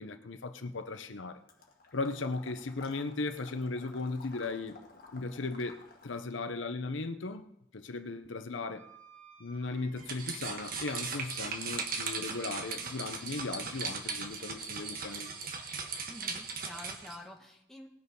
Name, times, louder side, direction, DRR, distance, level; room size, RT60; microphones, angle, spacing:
voice 1, 0.0-1.4 1.9-4.8 5.1-8.8 9.4-15.3, left 3 dB, 80° left, 0.8 m, -37 dB
Water / Liquid, 1.5-6.3, left 3 dB, 50° left, 1.8 m, -54 dB
Wind instrument woodwind instrument, 8.7-13.1, right 5 dB, 80° right, 4.1 m, -57 dB
sound 1, 10.0-17.1, right 5 dB, 50° right, 1.5 m, -38 dB
voice 2, 16.1-17.9, left 1 dB, ahead, 1.5 m, -48 dB
19.5 x 6.6 x 5.4 m
head